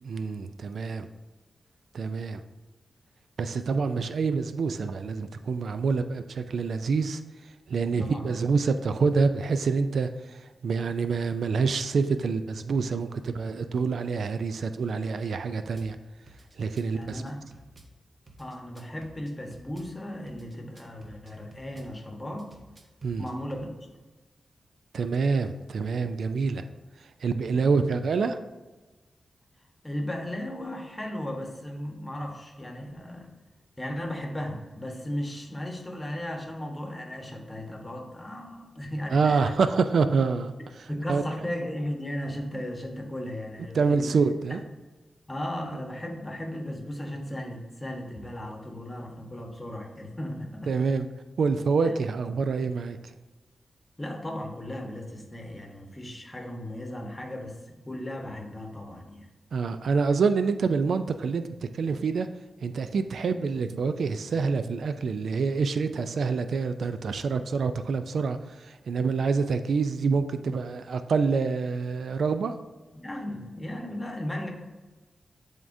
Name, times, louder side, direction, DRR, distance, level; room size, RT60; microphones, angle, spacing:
voice 1, 0.0-1.1 1.9-2.4 3.4-7.2 7.7-16.0 16.6-17.2 23.0-23.3 24.9-26.6 27.2-28.4 39.1-40.5 41.1-41.2 43.7-44.6 50.7-51.1 51.4-53.0 59.5-62.3 62.6-72.5, right 4 dB, 80° right, 10 dB, 0.3 m, -26 dB
voice 2, 8.0-8.4 16.8-17.4 18.4-22.5 23.2-23.7 27.5-27.9 29.8-33.3 33.8-39.5 40.9-44.1 44.5-44.6 45.3-50.7 51.8-51.9 54.0-59.3 72.9-74.5, left 1 dB, 20° left, 2 dB, 1.1 m, -36 dB
Drum kit / Bass drum, 15.8-15.9 16.3-17.9 18.3-19.9 20.3-21.9 22.4-23.7, right 2 dB, 45° right, 0.9 m, -52 dB
10.5 x 3.6 x 2.6 m, 1.2 s
wide cardioid pair, 110°, 0 cm